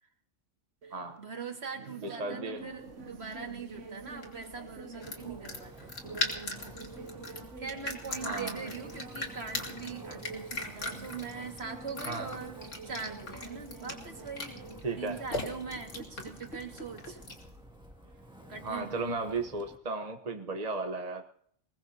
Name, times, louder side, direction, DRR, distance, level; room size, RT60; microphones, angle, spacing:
voice 1, 0.8-5.9 7.6-12.6 12.9-14.6 15.0-17.2 18.5-19.0, right 5 dB, 55° right, 3 dB, 2.4 m, -42 dB
sound 1, 0.8-19.2, right 4 dB, 70° right, 1.3 m, -48 dB
voice 2, 2.0-2.6 8.1-8.7 12.1-12.3 14.8-15.2 18.6-21.2, right 3 dB, 35° right, 5 dB, 1.2 m, -35 dB
sound 2, 2.7-17.6, left 2 dB, 70° left, 2.9 m, -41 dB
Wind, 5.0-19.8, equal, 5° right, 2.3 m, -51 dB
22.0 x 20.5 x 2.9 m, 0.62 s
omnidirectional pair, 1.3 m